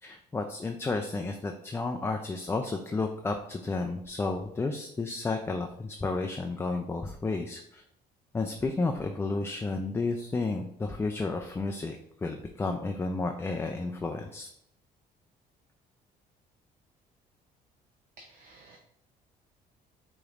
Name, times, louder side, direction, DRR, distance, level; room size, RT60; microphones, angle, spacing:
voice 1, 0.0-7.8 8.3-14.5, left 3 dB, 15° left, 3 dB, 0.3 m, -32 dB
voice 2, 18.2-18.8, right 2 dB, 55° right, 1 dB, 0.7 m, -53 dB
4.9 x 3.0 x 2.4 m, 0.74 s
cardioid pair, 110°, 17 cm